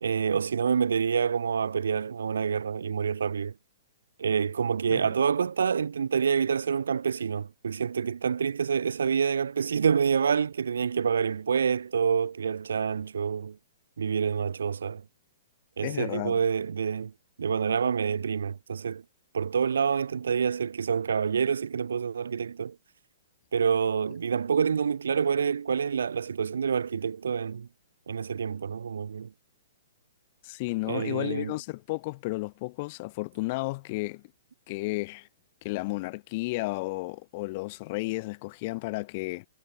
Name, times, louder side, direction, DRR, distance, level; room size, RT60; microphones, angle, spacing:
voice 1, 0.0-3.5 4.2-13.6 14.0-15.0 15.8-17.1 17.4-19.0 19.3-22.8 23.5-27.7 28.1-29.3 30.8-31.6, right 6 dB, 85° right, 0.6 m, -27 dB
voice 2, 15.8-16.4 30.4-34.2 34.7-35.3 35.6-39.5, left 23 dB, 40° left, 0.6 m, -33 dB
hypercardioid pair, 150°, 0 cm